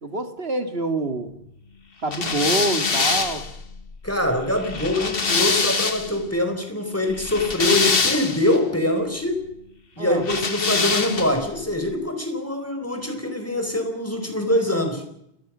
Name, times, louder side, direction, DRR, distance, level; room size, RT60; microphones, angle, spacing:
voice 1, 0.0-1.3 2.0-3.4 10.0-10.3, right 2 dB, 75° right, 8 dB, 2.5 m, -26 dB
sound 1, 2.1-6.2 7.1-8.6 10.2-11.5, left 4 dB, 65° left, 1.8 m, -24 dB
voice 2, 4.0-9.4 10.0-15.0, left 1 dB, 15° left, 5 dB, 4.3 m, -24 dB
29.5 x 21.5 x 6.2 m, 0.78 s
omnidirectional pair, 1.0 m